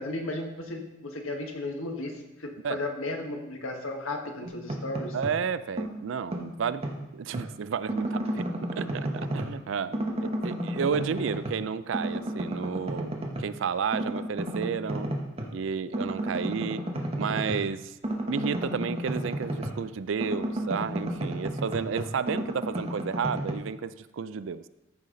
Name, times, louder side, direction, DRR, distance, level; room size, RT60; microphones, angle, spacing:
voice 1, 0.0-5.2 9.9-10.0, left 2 dB, 90° left, 3 dB, 1.5 m, -35 dB
sound 1, 4.4-5.4 5.8-7.5 7.9-9.6 9.9-11.7 11.9-13.5 13.9-15.5 15.9-19.9 20.2-23.5, right 1 dB, 30° right, 1.1 m, -32 dB
voice 2, 5.1-6.9 7.1-8.5 8.8-10.0 10.2-15.1 15.5-16.8 17.2-17.9 18.3-24.7, right 6 dB, 70° right, 15 dB, 0.4 m, -32 dB
14.0 x 5.6 x 3.9 m, 0.95 s
head